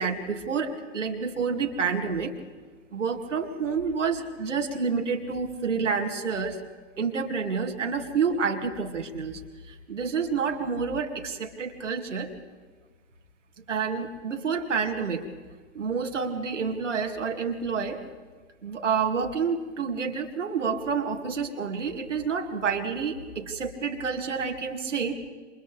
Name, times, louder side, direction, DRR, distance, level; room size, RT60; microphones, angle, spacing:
voice 1, 0.0-2.3 2.9-6.6 7.0-9.4 9.7-12.3 13.7-15.3 15.7-18.0 18.6-25.1, right 5 dB, 75° right, 3 dB, 2.5 m, -29 dB
28.5 x 27.0 x 3.4 m, 1.5 s
figure-of-eight pair, 110°, 37 cm